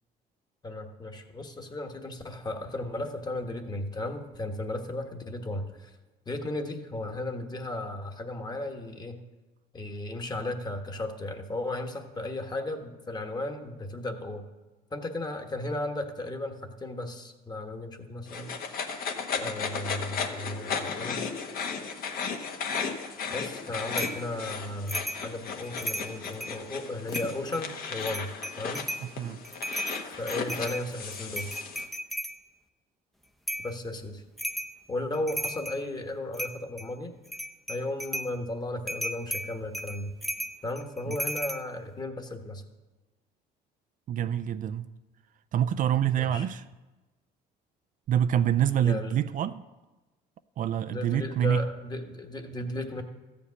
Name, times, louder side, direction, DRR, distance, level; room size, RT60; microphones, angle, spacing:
voice 1, 0.6-5.9 6.3-9.2 9.7-14.4 14.9-18.5 19.4-21.2 23.3-28.3 28.5-28.8 30.0-31.5 33.6-34.2 34.9-37.1 37.7-40.1 40.6-42.6 46.1-46.5 48.8-49.1 50.8-53.0, left 1 dB, 25° left, 1.3 m, -35 dB
sound 1, 18.3-31.8, left 5 dB, 60° left, 1.3 m, -35 dB
sound 2, 24.0-24.2 24.9-25.2 25.6-26.6 27.1-27.6 28.0-29.1 29.4-32.4 33.5-33.7 34.4-34.7 35.1-35.8 36.3-36.9 37.2-38.3 38.9-41.6, equal, ahead, 0.6 m, -35 dB
voice 2, 44.1-44.9 45.5-46.6 48.1-49.6 50.6-51.6, right 10 dB, 50° right, 0.4 m, -26 dB
14.0 x 5.2 x 8.3 m
cardioid pair, 110°, 17 cm